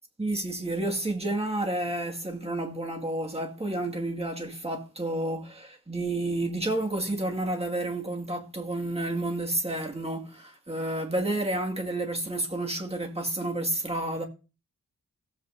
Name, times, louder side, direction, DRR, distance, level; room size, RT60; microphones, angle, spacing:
voice 1, 0.2-14.2, right 1 dB, 20° right, 2.1 m, -30 dB
16.5 x 7.8 x 2.7 m
wide cardioid pair, 90°, 31 cm